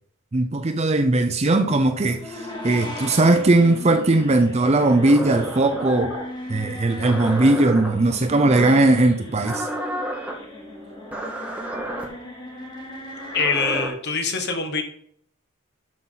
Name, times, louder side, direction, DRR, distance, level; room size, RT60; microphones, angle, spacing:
voice 1, 0.3-2.4 2.6-6.1 6.5-9.7, right 2 dB, 30° right, 0.5 m, -19 dB
sound 1, 2.0-13.8, left 1 dB, 20° left, 2.2 m, -37 dB
sound 2, 4.6-6.3 7.0-7.9 8.5-8.9 9.4-10.3 11.1-12.0 13.1-13.9, right 1 dB, 5° right, 1.6 m, -31 dB
voice 2, 13.3-14.8, left 4 dB, 50° left, 1.5 m, -24 dB
12.0 x 5.7 x 4.0 m
head